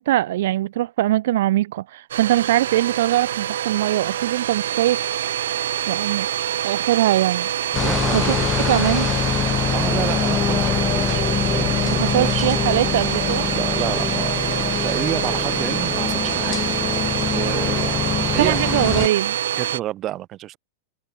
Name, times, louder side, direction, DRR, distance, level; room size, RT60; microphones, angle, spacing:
voice 1, 0.0-5.0 5.9-6.3 6.6-7.5 8.1-8.4 8.7-9.1 11.9-13.5 18.4-19.4, right 14 dB, 65° right, 2.1 m, -21 dB
Domestic sounds home sounds, 2.1-19.8, right 11 dB, 90° right, 2.7 m, -25 dB
sound 1, 7.7-19.1, left 8 dB, 20° left, 4.5 m, -24 dB
voice 2, 7.8-8.4 9.7-12.5 13.5-16.6 17.3-17.9 18.3-18.6 19.6-20.6, right 14 dB, 25° right, 7.6 m, -29 dB
supercardioid pair, 160°, 0 cm